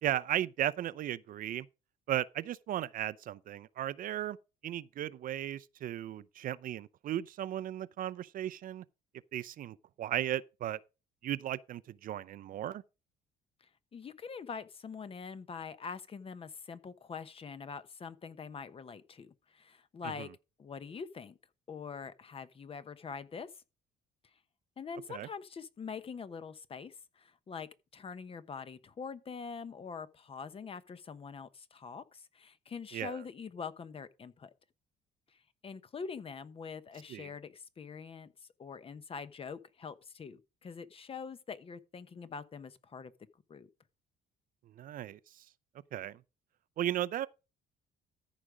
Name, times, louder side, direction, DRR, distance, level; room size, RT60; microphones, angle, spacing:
voice 1, 0.0-1.7 2.1-4.4 4.6-8.8 9.3-10.8 11.2-12.8 20.0-20.3 25.1-25.3 32.9-33.2 37.1-37.3 44.8-45.4 45.9-46.2 46.8-47.3, right 12 dB, 55° right, 0.5 m, -36 dB
voice 2, 13.6-20.3 20.6-21.4 21.7-23.5 24.8-34.5 35.6-38.3 38.6-43.1 43.5-43.7, left 5 dB, 35° left, 1.0 m, -44 dB
14.0 x 5.0 x 5.0 m
cardioid pair, 110°, 17 cm